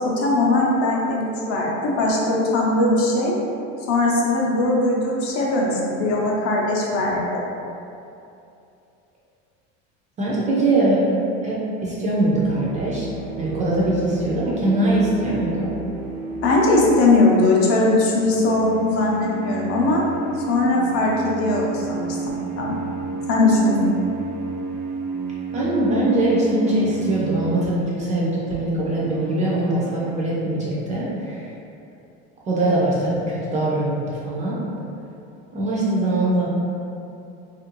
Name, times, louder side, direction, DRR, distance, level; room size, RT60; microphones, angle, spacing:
voice 1, 0.2-3.4 3.9-7.5 16.4-20.0 20.5-22.2 22.6-22.8 23.3-23.8, left 2 dB, 45° left, -3 dB, 0.6 m, -20 dB
voice 2, 10.2-11.2 11.4-13.1 13.4-15.7 25.5-31.4 32.5-34.6 35.5-36.5, right 1 dB, 25° right, -6 dB, 0.3 m, -22 dB
sound 1, 12.0-17.4 18.1-27.9 28.7-30.1, right 4 dB, 85° right, 0.5 m, -31 dB
2.9 x 2.5 x 2.9 m, 2.7 s
cardioid pair, 150°, 31 cm